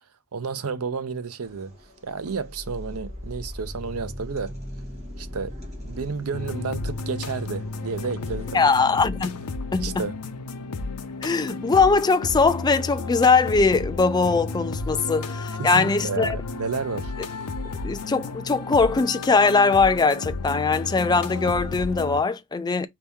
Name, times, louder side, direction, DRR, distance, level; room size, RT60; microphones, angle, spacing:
voice 1, 0.3-1.7 2.0-4.6 5.2-5.5 5.8-8.9 9.8-10.2 14.9-15.0 15.6-17.1, right 5 dB, 75° right, 0.6 m, -31 dB
sound 1, 1.4-8.7, left 1 dB, 30° right, 2.0 m, -39 dB
sound 2, 6.3-22.2, left 3 dB, 85° left, 0.6 m, -33 dB
voice 2, 8.5-9.4 9.7-10.0 11.2-16.4 17.8-22.9, left 4 dB, 20° left, 0.3 m, -21 dB
4.2 x 2.9 x 3.5 m
head